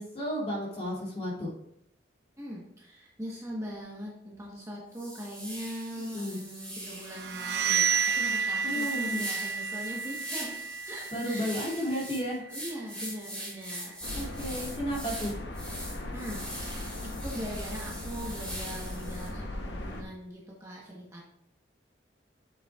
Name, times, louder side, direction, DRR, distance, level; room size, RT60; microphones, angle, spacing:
voice 1, 0.0-1.5 5.9-6.4 8.6-9.2 11.1-12.5 14.1-15.4, equal, 30° left, -5 dB, 2.5 m, -33 dB
voice 2, 2.4-10.6 10.8-11.5 12.5-14.0 16.1-16.9 17.2-21.2, equal, 15° right, -4 dB, 1.1 m, -41 dB
sound 1, 4.3-4.5 4.9-19.3, right 1 dB, 5° left, 2.3 m, -42 dB
sound 2, 7.1-12.8, right 6 dB, 60° right, 0.4 m, -31 dB
sound 3, 14.0-20.0, left 1 dB, 65° left, 0.9 m, -38 dB
8.0 x 7.0 x 2.4 m, 0.74 s
head